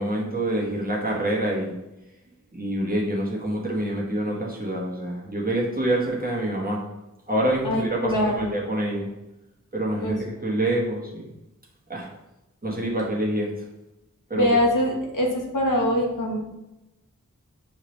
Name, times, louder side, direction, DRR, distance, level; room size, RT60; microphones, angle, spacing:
voice 1, 0.0-1.7 2.5-6.8 7.3-9.1 9.7-10.2 10.4-11.2 11.9-12.1 12.6-13.5 14.3-14.5, right 1 dB, 30° right, -4 dB, 1.1 m, -26 dB
voice 2, 7.6-8.6 10.0-10.2 14.3-16.4, left 1 dB, 85° left, -1 dB, 1.0 m, -23 dB
5.7 x 3.1 x 3.0 m, 0.93 s
wide cardioid pair, 45°, 31 cm